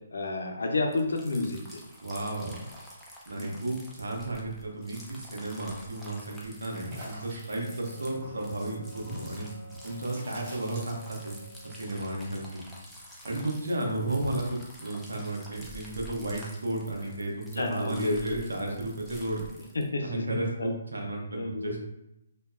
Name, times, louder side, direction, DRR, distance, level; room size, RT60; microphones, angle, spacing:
voice 1, 0.1-1.8 3.4-3.6 17.6-18.4 19.7-20.7 21.3-21.8, left 2 dB, 80° left, 3 dB, 0.5 m, -30 dB
sound 1, 0.9-19.9, equal, ahead, 0.4 m, -49 dB
voice 2, 2.0-2.6 3.3-9.5 9.8-11.4 11.6-12.6 13.2-19.4 20.0-21.8, right 2 dB, 85° right, 0 dB, 0.7 m, -33 dB
sound 2, 6.8-11.4 11.6-13.3 13.6-14.6, equal, 30° right, 1.0 m, -43 dB
Wind instrument woodwind instrument, 7.6-12.3, left 2 dB, 20° left, 1.2 m, -49 dB
2.8 x 2.2 x 2.4 m, 0.88 s
hypercardioid pair, 145°, 0 cm